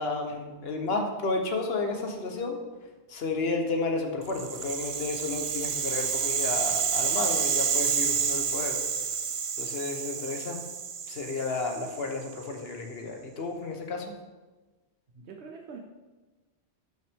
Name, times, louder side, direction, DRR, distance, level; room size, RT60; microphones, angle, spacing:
voice 1, 0.0-2.6 3.1-8.8 9.6-10.6 11.1-14.1, left 3 dB, 70° left, 4 dB, 1.3 m, -32 dB
Rattle (instrument), 4.3-12.5, right 7 dB, 55° right, 0.3 m, -29 dB
voice 2, 15.1-15.8, right 5 dB, 85° right, 2 dB, 1.1 m, -44 dB
12.0 x 5.8 x 3.6 m, 1.2 s
omnidirectional pair, 1.1 m